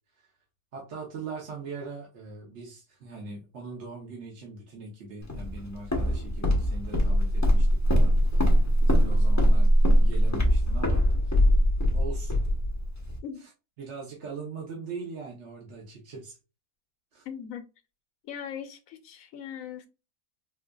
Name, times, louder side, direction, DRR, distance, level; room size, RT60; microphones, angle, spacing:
voice 1, 0.7-8.6 8.9-9.7 10.0-11.0 11.9-12.4 13.4-13.5 13.8-16.4 17.1-17.3, right 4 dB, 55° right, 1.1 m, -41 dB
Walk footsteps, 5.3-13.2, equal, 15° left, 0.6 m, -22 dB
voice 2, 17.2-17.6 18.2-19.9, left 8 dB, 65° left, 1.1 m, -39 dB
4.5 x 2.5 x 2.2 m
omnidirectional pair, 1.6 m